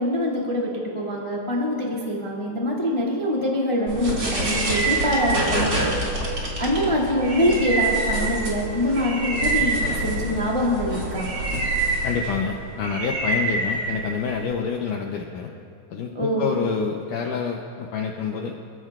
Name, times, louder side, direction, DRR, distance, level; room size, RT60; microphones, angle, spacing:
voice 1, 0.0-5.9 6.6-11.3 16.1-16.5, equal, 20° left, -4 dB, 0.8 m, -24 dB
sound 1, 3.9-14.5, right 2 dB, 30° right, 2.6 m, -26 dB
voice 2, 12.0-15.5 15.9-18.5, left 6 dB, 85° left, 2 dB, 1.8 m, -27 dB
27.5 x 15.5 x 2.5 m, 2.5 s
omnidirectional pair, 4.7 m